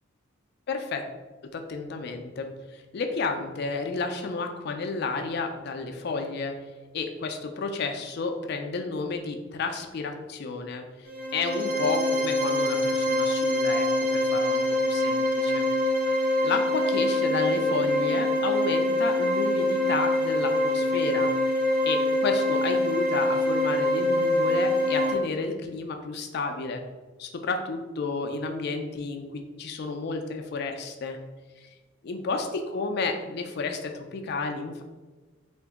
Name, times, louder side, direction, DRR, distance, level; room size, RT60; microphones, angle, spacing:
voice 1, 0.7-1.0 1.5-6.6 6.9-15.7 16.4-21.3 21.9-26.8 27.2-31.2 31.6-31.7 32.0-34.8, left 4 dB, 55° left, 4 dB, 0.4 m, -31 dB
sound 1, 11.1-25.1, left 1 dB, 50° right, 0.6 m, -25 dB
2.9 x 2.5 x 3.5 m, 1.3 s
head